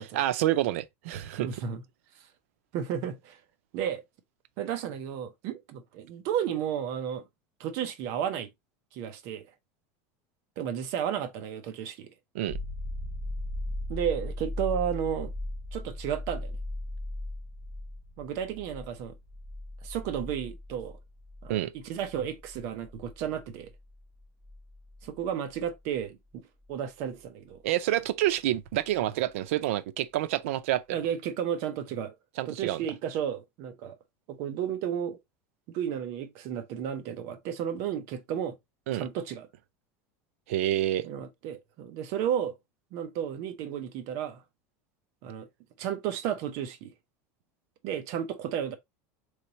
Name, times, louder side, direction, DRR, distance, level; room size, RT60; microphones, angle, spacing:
voice 1, 0.0-1.5 12.3-12.6 21.5-21.7 27.6-30.8 32.4-32.8 38.9-39.0 40.5-41.1, right 14 dB, 90° right, 0.5 m, -28 dB
voice 2, 1.4-1.8 2.2-2.3 2.7-3.4 3.7-4.0 4.6-7.3 7.6-8.5 8.9-9.5 10.6-12.1 13.9-15.3 15.7-16.6 18.2-19.2 19.8-21.0 21.4-23.7 25.0-26.4 26.7-27.6 30.9-32.2 32.4-34.0 34.3-35.2 35.7-38.6 38.9-39.5 41.0-42.6 42.9-44.4 45.2-45.5 45.8-46.9 47.8-48.8, right 9 dB, 45° right, 0.7 m, -33 dB
sound 1, 12.5-26.0 28.7-28.8, left 1 dB, ahead, 1.7 m, -38 dB
3.9 x 3.2 x 2.7 m
cardioid pair, 180°, 7 cm